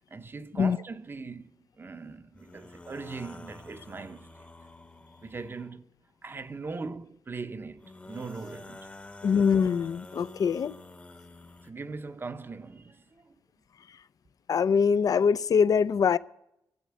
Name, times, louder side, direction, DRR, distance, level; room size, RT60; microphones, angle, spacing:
voice 1, 0.1-4.5 5.2-5.9 6.2-8.9 11.6-13.3, right 4 dB, 30° right, 0.7 m, -40 dB
sound 1, 2.3-5.7 7.8-11.7, left 2 dB, 20° left, 0.9 m, -48 dB
voice 2, 9.2-10.7 14.5-16.2, left 6 dB, 55° left, 0.5 m, -23 dB
14.0 x 8.4 x 8.7 m
cardioid pair, 105°, 7 cm